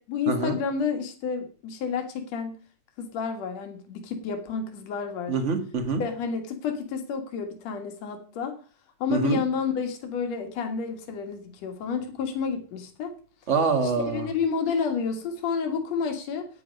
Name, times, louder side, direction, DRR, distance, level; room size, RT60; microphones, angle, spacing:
voice 1, 0.0-2.6 3.0-5.3 6.0-8.5 9.0-13.1 13.8-16.5, left 6 dB, 65° left, 5 dB, 2.8 m, -30 dB
voice 2, 5.3-6.0 9.1-9.4 13.5-14.2, right 4 dB, 30° right, 7 dB, 1.4 m, -25 dB
11.0 x 9.7 x 5.2 m, 0.40 s
omnidirectional pair, 3.4 m